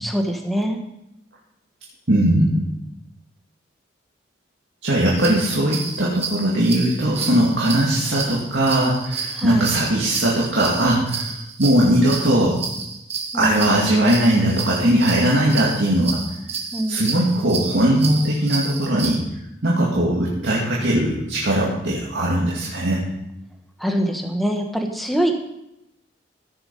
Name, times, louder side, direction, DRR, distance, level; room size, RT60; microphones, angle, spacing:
voice 1, 0.0-0.8 9.3-9.7 13.3-13.6 16.7-17.1 23.8-25.4, equal, ahead, 3 dB, 1.2 m, -24 dB
voice 2, 2.1-2.6 4.8-12.6 13.3-16.2 16.9-19.2 19.6-23.0, right 1 dB, 70° right, -5 dB, 2.3 m, -19 dB
sound 1, 5.1-19.2, right 5 dB, 35° right, 1.4 m, -31 dB
15.5 x 7.0 x 5.4 m, 0.85 s
head